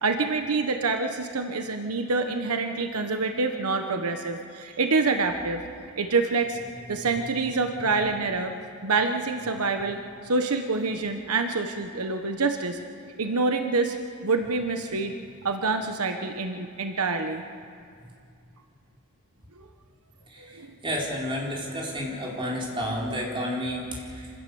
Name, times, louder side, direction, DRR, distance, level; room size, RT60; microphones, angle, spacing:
voice 1, 0.0-5.6 6.0-6.6 6.9-8.5 8.8-12.8 13.2-13.9 14.2-15.1 15.4-17.4 20.4-20.7, right 3 dB, 80° right, 6 dB, 1.1 m, -26 dB
voice 2, 20.3-24.3, equal, 25° right, -3 dB, 4.2 m, -31 dB
26.5 x 16.5 x 7.0 m, 2.4 s
head